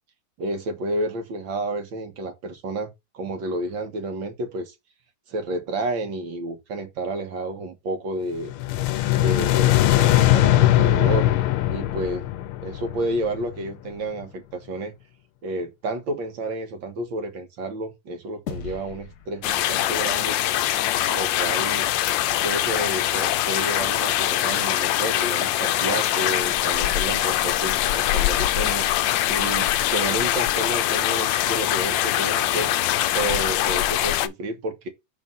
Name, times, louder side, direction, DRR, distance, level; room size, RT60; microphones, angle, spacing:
voice 1, 0.4-4.7 5.3-8.5 9.1-11.3 11.7-12.2 12.6-14.9 15.4-20.4 21.1-21.9 22.4-28.9 29.3-32.7 33.1-34.9, right 2 dB, 65° right, 2.1 m, -30 dB
sound 1, 8.4-13.6, left 14 dB, 90° left, 1.5 m, -20 dB
sound 2, 18.5-21.1, left 7 dB, 60° left, 1.2 m, -40 dB
Rain & thunder (light), 19.4-34.3, left 13 dB, 75° left, 1.2 m, -23 dB
5.5 x 4.4 x 5.5 m
omnidirectional pair, 2.3 m